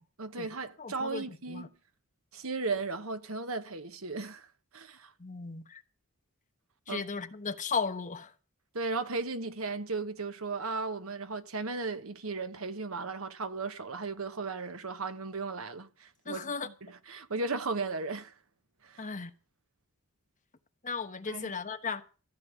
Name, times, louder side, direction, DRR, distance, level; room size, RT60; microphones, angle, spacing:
voice 1, 0.2-1.7 2.3-4.5 4.7-5.1 6.9-7.0 8.7-18.3 18.8-19.1 21.3-21.5, right 3 dB, 80° right, 1.3 m, -36 dB
voice 2, 0.8-1.7 5.2-5.8 6.9-8.3 16.3-16.7 19.0-19.3 20.8-22.0, left 5 dB, 40° left, 1.2 m, -36 dB
15.0 x 5.4 x 9.5 m
head